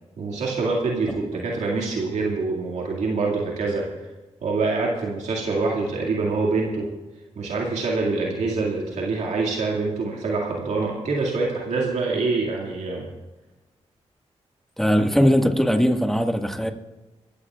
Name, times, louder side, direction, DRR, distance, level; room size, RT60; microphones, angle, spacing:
voice 1, 0.2-3.9 4.4-6.9 7.4-13.1, right 3 dB, 80° right, -2 dB, 2.2 m, -25 dB
voice 2, 14.8-16.7, equal, 5° left, 4 dB, 1.7 m, -20 dB
23.0 x 15.0 x 2.4 m, 1.1 s
cardioid pair, 50°, 12 cm